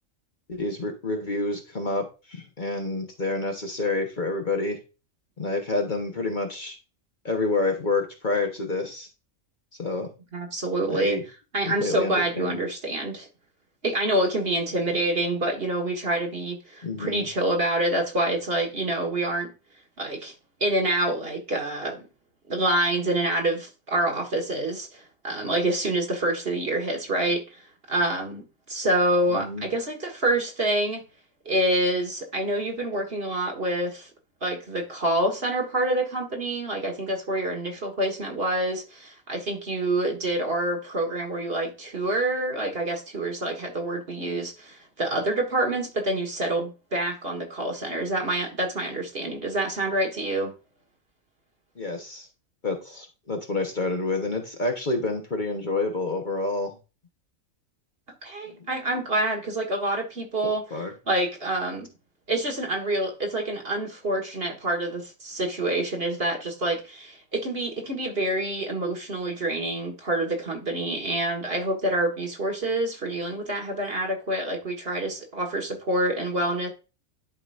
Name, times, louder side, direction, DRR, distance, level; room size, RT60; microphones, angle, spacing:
voice 1, 0.5-4.8 5.4-6.8 7.2-9.1 9.8-10.1 10.9-11.2 11.6-12.6 16.8-17.3 29.3-29.6 51.8-52.3 52.6-56.8 60.7-60.9, left 3 dB, 35° left, 1.2 m, -28 dB
voice 2, 10.3-11.2 11.5-13.3 13.8-19.5 20.0-20.3 20.6-22.0 22.5-27.4 27.9-31.0 31.5-34.1 34.4-50.5 58.2-61.9 62.3-76.7, right 1 dB, 45° right, 1.8 m, -27 dB
11.0 x 5.0 x 2.5 m
omnidirectional pair, 1.4 m